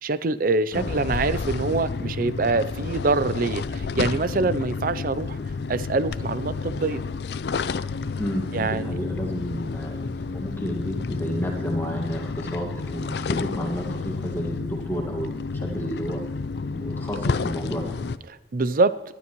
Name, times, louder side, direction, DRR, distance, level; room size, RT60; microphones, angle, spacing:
voice 1, 0.0-5.4 5.7-7.0 8.5-9.0 18.5-19.0, right 3 dB, 50° right, 15 dB, 0.5 m, -24 dB
sound 1, 0.7-18.2, left 4 dB, 60° left, 0.4 m, -30 dB
voice 2, 8.1-16.2 16.6-18.0, equal, 10° left, -1 dB, 1.8 m, -32 dB
20.0 x 12.5 x 3.1 m, 1.1 s
head